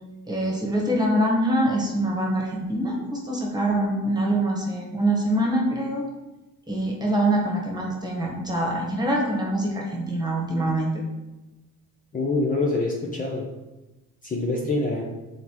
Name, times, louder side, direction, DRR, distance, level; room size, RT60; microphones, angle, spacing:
voice 1, 0.2-6.1 6.7-11.0, right 1 dB, 10° right, -1 dB, 1.5 m, -24 dB
voice 2, 12.1-13.5 14.2-15.0, left 2 dB, 25° left, -2 dB, 0.8 m, -25 dB
6.7 x 4.1 x 4.6 m, 1.1 s
cardioid pair, 135°, 35 cm